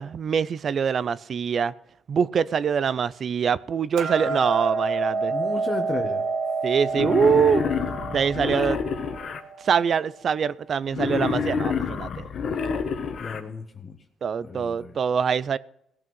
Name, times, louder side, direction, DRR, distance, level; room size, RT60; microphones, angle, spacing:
voice 1, 0.0-1.7 2.1-5.3 6.6-7.6 8.1-8.8 9.6-12.3 14.2-15.6, right 7 dB, 50° right, 0.5 m, -24 dB
Hammer, 4.0-10.2, right 4 dB, 85° right, 1.3 m, -29 dB
voice 2, 5.3-6.2 13.2-14.0 14.4-14.9, left 4 dB, 40° left, 1.3 m, -33 dB
Wild animals, 6.9-9.4 10.9-13.4, left 6 dB, 60° left, 1.3 m, -28 dB
18.0 x 6.1 x 5.5 m
cardioid pair, 90°, 0 cm